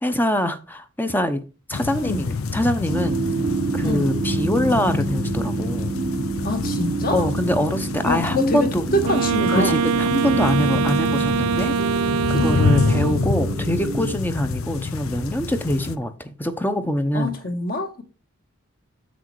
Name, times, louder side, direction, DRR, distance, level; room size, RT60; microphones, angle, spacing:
voice 1, 0.0-1.4 1.7-3.2 3.7-6.0 7.1-8.9 9.5-11.7 12.3-17.3, equal, 10° left, 0.7 m, -24 dB
sound 1, 1.7-16.0, left 4 dB, 80° left, 0.7 m, -27 dB
sound 2, 2.9-14.2, right 4 dB, 30° right, 0.4 m, -29 dB
voice 2, 6.4-7.3 8.0-9.8 12.4-12.7 17.1-18.0, left 2 dB, 40° left, 1.5 m, -25 dB
Wind instrument woodwind instrument, 9.0-13.4, right 5 dB, 90° right, 0.4 m, -23 dB
7.5 x 6.2 x 4.7 m
head